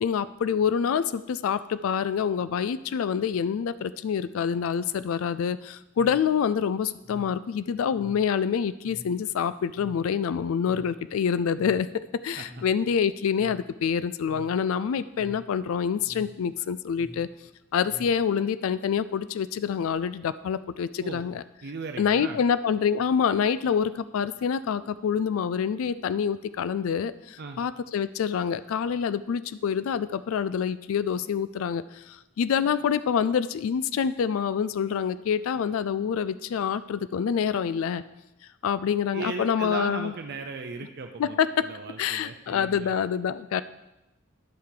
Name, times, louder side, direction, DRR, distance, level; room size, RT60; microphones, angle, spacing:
voice 1, 0.0-17.3 17.7-21.4 22.0-38.0 38.6-40.1 41.2-41.7 42.0-43.6, left 7 dB, 80° left, 15 dB, 0.3 m, -26 dB
sound 1, 7.0-18.6, equal, 25° right, 1.4 m, -49 dB
voice 2, 21.6-22.4 27.4-27.6 39.1-42.9, right 4 dB, 55° right, 5 dB, 0.5 m, -37 dB
10.5 x 5.7 x 4.8 m, 0.95 s
head